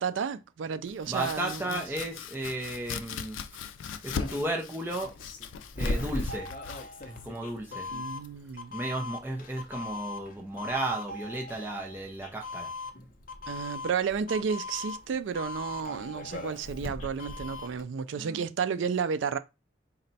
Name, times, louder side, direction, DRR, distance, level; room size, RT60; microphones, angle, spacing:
voice 1, 0.0-1.8 7.9-8.7 13.5-19.4, right 6 dB, 80° right, 0.3 m, -32 dB
Domestic sounds home sounds, 0.8-8.6, left 6 dB, 90° left, 0.4 m, -40 dB
voice 2, 1.1-3.4 4.0-5.1 5.8-6.5 7.1-7.9 8.7-12.7 18.2-18.4, right 1 dB, 10° right, 0.5 m, -34 dB
Doorbell, 5.0-17.8, left 2 dB, 45° left, 0.6 m, -39 dB
4.0 x 2.2 x 4.0 m
head